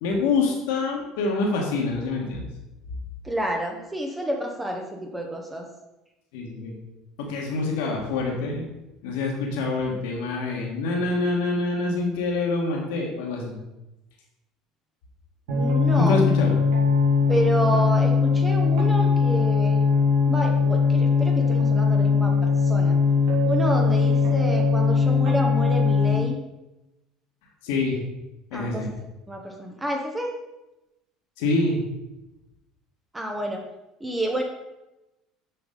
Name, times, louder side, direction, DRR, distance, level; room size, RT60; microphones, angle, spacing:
voice 1, 0.0-2.5 6.3-6.8 7.2-8.7 9.0-13.6 16.0-16.5 27.6-28.0 28.5-28.9 31.4-31.8, left 3 dB, 75° left, 0 dB, 1.4 m, -26 dB
voice 2, 3.2-5.7 15.5-16.2 17.3-19.8 20.3-22.3 22.6-23.0 23.4-26.4 28.5-28.9 29.3-30.4 33.1-33.6 34.0-34.4, equal, 15° right, 2 dB, 1.0 m, -29 dB
sound 1, 15.5-26.1, left 5 dB, 80° right, 1.8 m, -20 dB
6.9 x 4.7 x 3.8 m, 0.97 s
hypercardioid pair, 75°, 0 cm